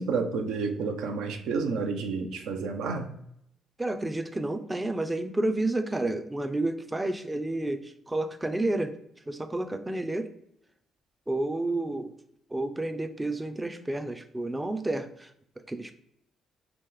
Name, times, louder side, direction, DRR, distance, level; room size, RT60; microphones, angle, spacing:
voice 1, 0.0-3.1, right 4 dB, 85° right, 5 dB, 0.5 m, -30 dB
voice 2, 3.8-9.0 9.3-10.3 11.3-12.1 12.5-15.9, right 2 dB, 15° right, 8 dB, 0.4 m, -30 dB
2.9 x 2.9 x 3.7 m, 0.73 s
cardioid pair, 90°, 0 cm